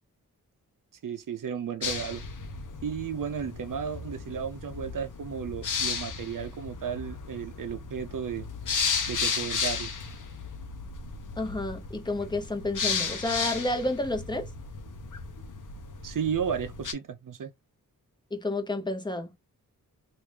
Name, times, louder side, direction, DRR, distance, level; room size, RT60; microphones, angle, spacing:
voice 1, 1.0-2.2 2.8-8.5 9.1-9.9 16.0-17.5, right 7 dB, 65° right, 0.7 m, -34 dB
sound 1, 1.8-16.9, left 5 dB, 60° left, 0.8 m, -34 dB
voice 2, 11.4-14.5 18.3-19.3, left 2 dB, 15° left, 0.9 m, -30 dB
3.1 x 2.6 x 3.3 m
cardioid pair, 65°, 35 cm